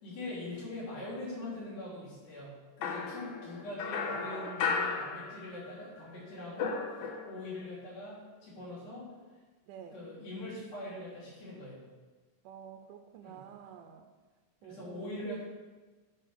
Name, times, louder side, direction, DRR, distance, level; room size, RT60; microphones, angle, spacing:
voice 1, 0.0-9.1 9.9-11.8 13.2-13.4 14.6-15.4, left 2 dB, 85° left, -9 dB, 5.4 m, -42 dB
sound 1, 2.8-5.8 6.1-7.6, left 5 dB, 70° left, 2.2 m, -35 dB
voice 2, 3.9-4.5 9.7-10.0 12.4-14.1 14.6-15.4, right 9 dB, 80° right, 5 dB, 2.1 m, -48 dB
10.0 x 4.9 x 6.3 m, 1.3 s
omnidirectional pair, 4.0 m